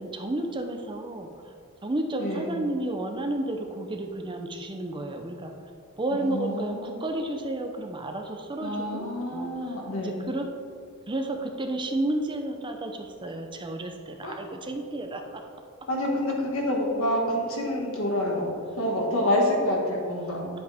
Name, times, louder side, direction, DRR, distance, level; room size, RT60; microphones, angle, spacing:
voice 1, 0.0-1.5 1.8-5.5 6.0-10.5 11.1-15.2, right 1 dB, 20° right, 4 dB, 0.6 m, -32 dB
voice 2, 2.2-2.5 6.1-7.0 8.6-10.2 14.2-14.4 15.9-20.5, left 1 dB, 65° left, -1 dB, 1.8 m, -27 dB
10.0 x 7.8 x 3.5 m, 2.3 s
head